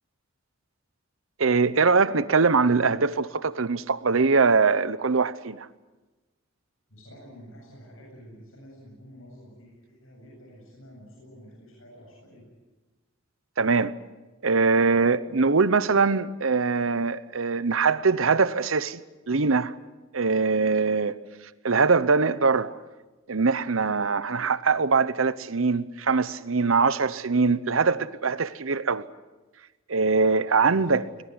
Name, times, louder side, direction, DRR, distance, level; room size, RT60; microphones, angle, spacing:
voice 1, 1.4-5.7 13.6-13.9 14.4-19.0 19.3-19.7 20.1-21.2 21.6-22.8 23.3-29.0 29.9-31.0, right 4 dB, 75° right, 0.9 m, -22 dB
voice 2, 6.9-12.5 30.7-31.0, equal, 75° left, 7.9 m, -49 dB
21.5 x 21.0 x 9.7 m
head